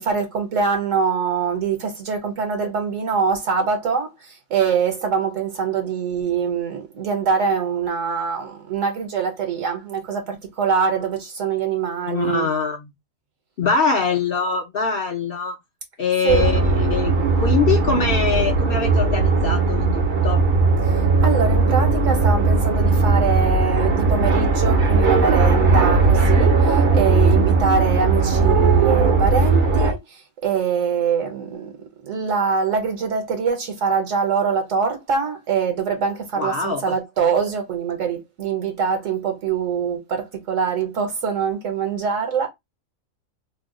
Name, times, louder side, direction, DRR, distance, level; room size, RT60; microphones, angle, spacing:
voice 1, 0.0-12.5 16.2-16.5 20.8-30.0 30.4-42.5, right 6 dB, 70° right, 1.2 m, -23 dB
voice 2, 12.1-12.9 13.6-15.6 16.0-20.5 36.4-37.0, left 5 dB, 60° left, 0.6 m, -23 dB
sound 1, 16.3-29.9, right 3 dB, 50° right, 0.6 m, -18 dB
2.7 x 2.2 x 3.6 m
omnidirectional pair, 1.4 m